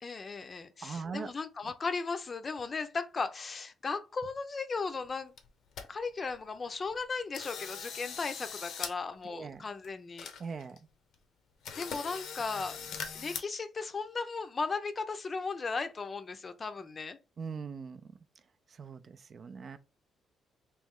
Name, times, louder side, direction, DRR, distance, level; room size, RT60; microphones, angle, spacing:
voice 1, 0.0-5.3 5.9-10.3 11.8-12.8 13.1-17.2, left 4 dB, 35° left, 0.5 m, -36 dB
voice 2, 0.8-1.3 9.3-9.6 10.4-10.8 17.4-18.0 18.8-19.8, right 5 dB, 45° right, 0.4 m, -40 dB
sound 1, 5.0-5.1 5.4-5.9 6.3-6.4 6.8-7.0 7.3-8.9 9.2-9.3 9.8-9.9 10.2-10.8 11.1-11.2 11.6-13.4, left 6 dB, 75° left, 0.7 m, -41 dB
3.1 x 3.0 x 3.6 m
cardioid pair, 90°, 0 cm